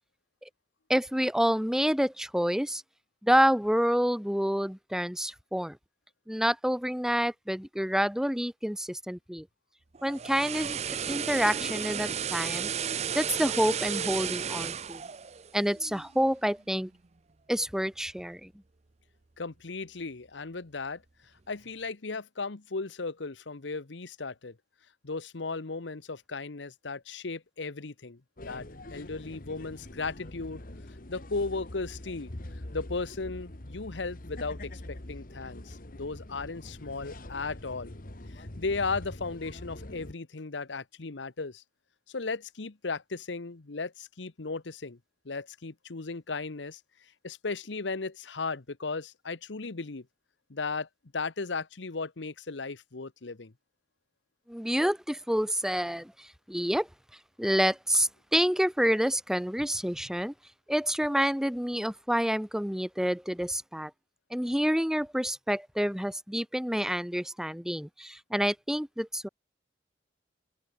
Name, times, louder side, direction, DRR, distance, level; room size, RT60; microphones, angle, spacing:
voice 1, 0.9-2.8 3.2-5.8 6.3-9.5 10.0-12.7 13.1-15.0 15.5-16.9 17.5-18.5 54.5-56.9 57.4-60.3 60.7-63.9 64.3-69.3, equal, 5° right, 1.0 m, -28 dB
sound 1, 10.0-16.2 16.5-16.7, right 7 dB, 35° right, 0.7 m, -33 dB
voice 2, 19.4-21.0 21.5-24.6 25.0-28.2 28.4-30.6 30.9-32.3 32.7-37.9 38.3-41.6 42.1-45.0 45.2-46.8 47.2-50.1 50.5-50.9 51.1-53.5, left 4 dB, 85° left, 1.1 m, -36 dB
sound 2, 28.4-40.1, left 1 dB, 50° left, 1.8 m, -44 dB
open air
head